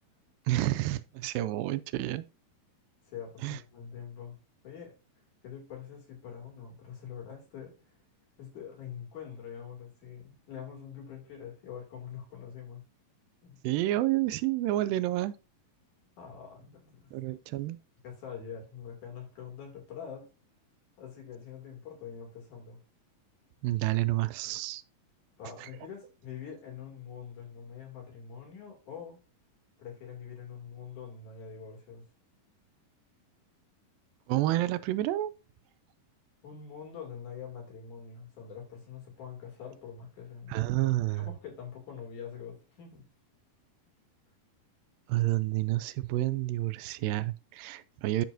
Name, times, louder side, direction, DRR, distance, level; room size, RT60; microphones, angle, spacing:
voice 1, 0.5-2.2 3.4-3.6 13.6-15.4 17.1-17.8 23.6-24.8 25.6-25.7 34.3-35.3 40.5-41.3 45.1-48.3, right 16 dB, 90° right, 2.3 m, -29 dB
voice 2, 3.1-4.4 4.6-4.9 5.4-7.7 8.4-12.8 13.4-13.6 16.2-17.1 18.0-20.3 21.0-22.8 25.4-29.2 29.8-32.0 36.4-43.1, left 7 dB, 60° left, 3.9 m, -44 dB
12.5 x 5.4 x 2.6 m
omnidirectional pair, 4.0 m